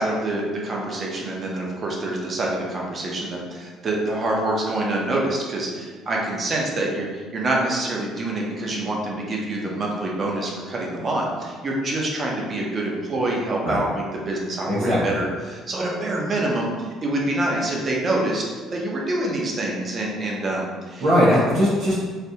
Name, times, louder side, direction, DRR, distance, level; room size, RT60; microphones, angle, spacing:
voice 1, 0.0-18.4 18.7-21.1, right 2 dB, 30° right, -2 dB, 0.6 m, -26 dB
voice 2, 14.7-15.1 21.0-22.0, equal, 85° right, -12 dB, 1.1 m, -19 dB
3.3 x 2.6 x 2.8 m, 1.5 s
cardioid pair, 160°, 0 cm